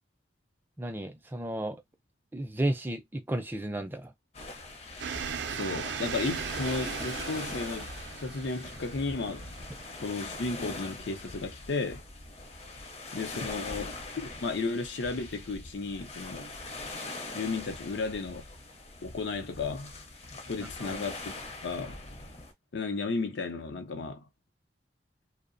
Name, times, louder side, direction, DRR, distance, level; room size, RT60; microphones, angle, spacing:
voice 1, 0.8-1.8 2.3-4.1 20.6-21.0, right 1 dB, 10° right, 0.3 m, -33 dB
sound 1, 4.3-22.5, left 2 dB, 35° left, 0.6 m, -42 dB
sound 2, 5.0-11.5, right 7 dB, 80° right, 0.4 m, -39 dB
voice 2, 5.5-7.9 8.2-9.5 10.0-12.0 13.1-16.5 17.3-18.4 19.0-20.0 20.5-21.1 21.6-22.0 22.7-24.2, left 3 dB, 85° left, 0.6 m, -34 dB
2.7 x 2.1 x 2.5 m
head